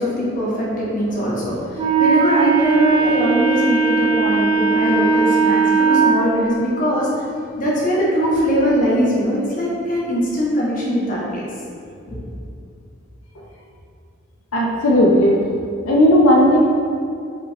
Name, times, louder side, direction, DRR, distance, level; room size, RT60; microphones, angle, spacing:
voice 1, 0.0-7.1 7.6-11.5 12.1-12.2, equal, 40° left, -6 dB, 1.0 m, -21 dB
Wind instrument woodwind instrument, 1.8-6.1, right 5 dB, 25° right, 0.5 m, -17 dB
voice 2, 14.5-15.4 15.8-16.7, equal, 85° left, -2 dB, 0.5 m, -14 dB
4.9 x 3.3 x 2.9 m, 2.4 s
head